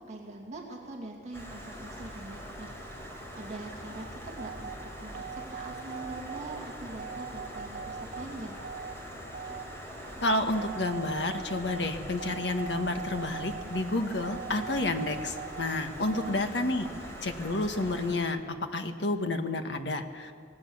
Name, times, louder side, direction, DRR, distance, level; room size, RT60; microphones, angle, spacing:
voice 1, 0.1-2.8 3.4-4.7 5.0-8.6 16.0-16.4, right 2 dB, 35° right, -1 dB, 2.4 m, -43 dB
Stream, 1.3-18.1, equal, 15° left, 4.4 m, -43 dB
sound 1, 4.4-16.3, right 7 dB, 70° right, 2.3 m, -42 dB
voice 2, 10.2-16.9 17.2-20.3, left 2 dB, 70° left, 6 dB, 1.6 m, -30 dB
26.0 x 18.0 x 7.1 m, 2.2 s
head